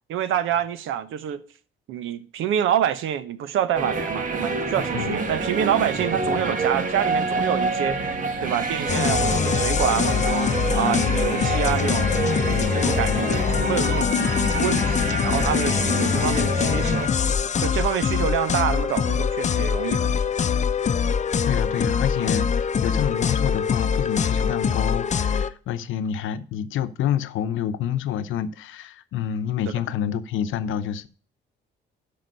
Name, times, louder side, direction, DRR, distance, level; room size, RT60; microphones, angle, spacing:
voice 1, 0.1-1.4 1.9-14.2 14.6-17.1 17.6-20.2 29.6-29.8, right 10 dB, 85° right, 0.9 m, -27 dB
sound 1, 3.7-17.1, right 3 dB, 40° right, 1.7 m, -27 dB
sound 2, 8.9-25.5, left 7 dB, 35° left, 0.7 m, -23 dB
voice 2, 10.8-11.4 12.5-12.7 15.0-15.2 18.1-18.3 21.5-31.1, left 9 dB, 80° left, 0.8 m, -28 dB
12.5 x 5.1 x 5.4 m
cardioid pair, 90°, 20 cm